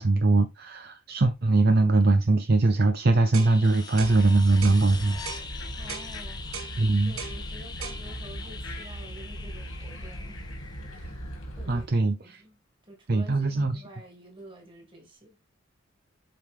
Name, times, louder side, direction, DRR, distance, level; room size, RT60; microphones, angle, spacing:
voice 1, 0.0-5.2 6.8-7.2 11.7-12.4 13.1-13.8, right 2 dB, 50° right, 0.6 m, -22 dB
sound 1, 3.3-3.6 4.0-4.2 4.6-4.8 5.3-5.5 5.9-6.1 6.5-6.7 7.2-7.4 7.8-8.0, right 6 dB, 90° right, 1.4 m, -38 dB
sound 2, 3.4-12.0 14.4-14.5, left 5 dB, 20° left, 0.8 m, -43 dB
sound 3, 4.0-11.9, equal, 90° left, 2.4 m, -39 dB
voice 2, 5.7-6.4 7.0-10.4 10.9-12.6 12.8-15.4, right 1 dB, 25° right, 2.6 m, -49 dB
7.7 x 5.0 x 3.6 m
head